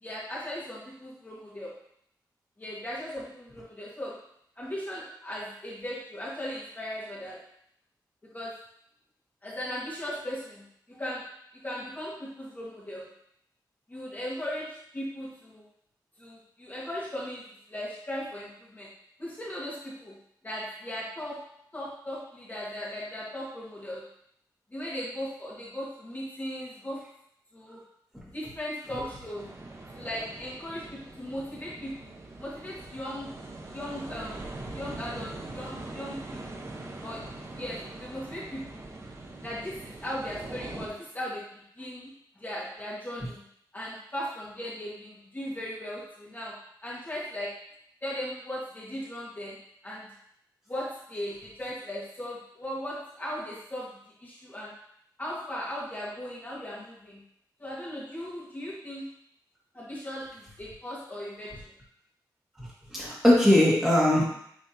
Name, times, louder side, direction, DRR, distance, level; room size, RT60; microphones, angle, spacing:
voice 1, 0.0-1.7 2.6-4.1 4.6-7.4 8.3-8.5 9.4-11.2 11.6-13.1 13.9-15.7 16.2-17.4 17.7-18.9 19.2-20.2 20.4-21.4 21.7-24.0 24.7-27.0 27.5-27.8 28.3-29.5 29.9-32.1 32.4-33.3 33.7-34.5 34.7-36.7 37.0-37.2 37.6-38.8 39.4-41.5 41.8-42.1 42.4-43.4 43.7-46.5 46.8-47.5 48.0-49.6 49.8-50.1 50.7-53.9 54.2-54.7 55.2-57.2 57.6-59.0 59.7-61.5, equal, 25° left, -7 dB, 1.6 m, -37 dB
sound 1, 29.3-40.9, right 2 dB, 35° right, 0.9 m, -42 dB
voice 2, 62.6-64.3, left 1 dB, 5° right, -6 dB, 2.0 m, -21 dB
9.5 x 3.5 x 2.8 m, 0.70 s
wide cardioid pair, 110°, 8 cm